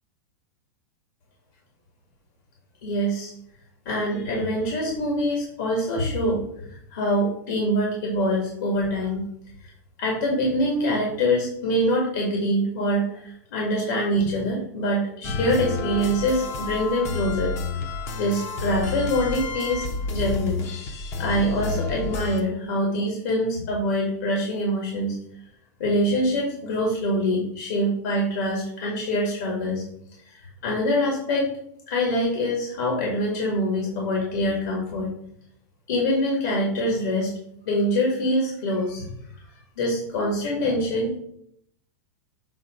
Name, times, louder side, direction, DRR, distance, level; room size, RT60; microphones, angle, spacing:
voice 1, 2.8-3.3 3.9-9.2 9.6-9.7 10.0-17.5 18.2-20.6 21.2-25.2 25.8-29.8 30.2-31.5 31.9-35.1 35.9-37.3 37.6-39.1 39.8-41.2, equal, 70° left, -2 dB, 2.2 m, -24 dB
sound 1, 15.2-22.4, left 4 dB, 25° left, 0.7 m, -30 dB
7.5 x 3.1 x 5.2 m, 0.71 s
supercardioid pair, 165°, 10 cm